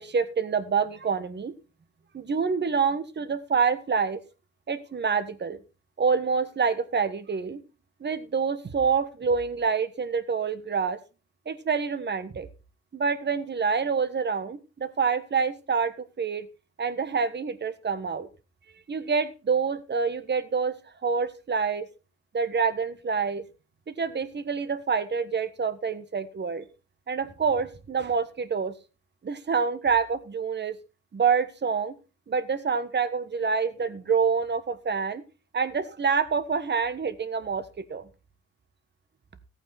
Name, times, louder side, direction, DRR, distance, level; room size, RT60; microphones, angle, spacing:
voice 1, 0.0-1.5 2.1-4.2 4.7-5.6 6.0-7.6 8.0-11.0 11.5-12.5 12.9-16.5 16.8-18.3 18.9-21.9 22.3-23.4 23.9-26.6 27.1-28.7 29.2-30.8 31.1-31.9 32.3-35.2 35.5-37.6 37.9-38.0, right 5 dB, 35° right, 12 dB, 1.3 m, -27 dB
14.5 x 8.7 x 4.2 m, 0.33 s
cardioid pair, 90°, 30 cm